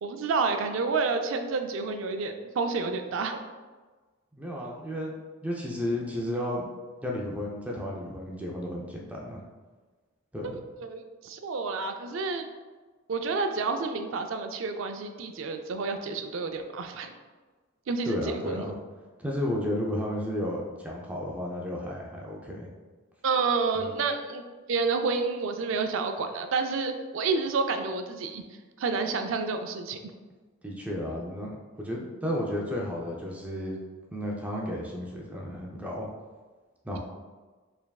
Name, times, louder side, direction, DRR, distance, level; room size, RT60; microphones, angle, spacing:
voice 1, 0.0-3.4 10.4-12.4 13.1-17.1 17.9-18.7 23.2-24.4 24.7-28.4 28.8-30.0, right 4 dB, 65° right, 6 dB, 0.4 m, -29 dB
voice 2, 4.3-5.2 5.4-6.7 7.0-9.4 10.3-10.6 18.0-18.7 19.2-22.7 23.8-23.9 30.6-31.5 31.8-33.8 34.1-36.1 36.8-37.0, left 1 dB, 5° right, -2 dB, 0.4 m, -33 dB
4.6 x 3.4 x 2.3 m, 1.3 s
head